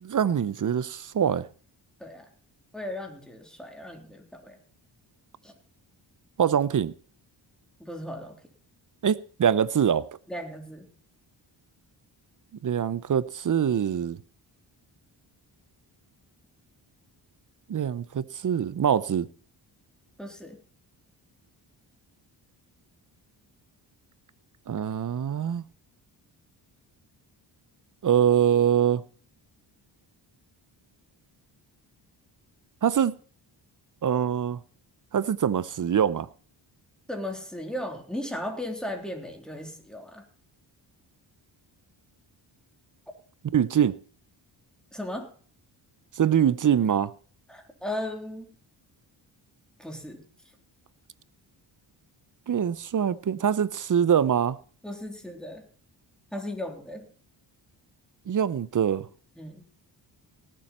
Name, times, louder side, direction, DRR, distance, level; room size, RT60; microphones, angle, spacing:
voice 1, 0.0-1.5 6.4-6.9 9.0-10.0 12.6-14.2 17.7-19.3 24.7-25.6 28.0-29.0 32.8-33.1 34.0-34.6 35.1-36.3 43.5-44.0 46.1-47.1 52.5-54.6 58.3-59.1, right 8 dB, 40° right, 0.7 m, -24 dB
voice 2, 2.7-4.6 5.4-5.5 7.8-8.4 10.3-10.9 20.2-20.6 37.1-40.2 44.9-45.3 47.5-48.5 49.8-50.2 54.8-55.6 56.3-57.1 59.4-59.7, left 1 dB, ahead, 3.4 m, -36 dB
18.5 x 7.6 x 4.3 m
cardioid pair, 65°, 47 cm